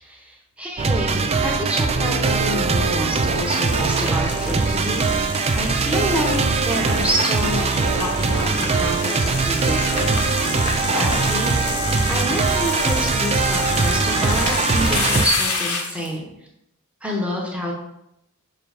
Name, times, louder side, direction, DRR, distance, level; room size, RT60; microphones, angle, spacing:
voice 1, 0.0-5.1 5.5-16.3 17.0-17.7, equal, 5° right, -2 dB, 1.1 m, -28 dB
sound 1, 0.8-15.3, right 4 dB, 25° right, 0.4 m, -21 dB
sound 2, 1.9-6.0 6.9-10.5 12.0-12.1, right 2 dB, 80° right, 1.3 m, -33 dB
sound 3, 3.1-16.1, left 3 dB, 80° left, 1.3 m, -29 dB
5.5 x 3.9 x 4.9 m, 0.82 s
head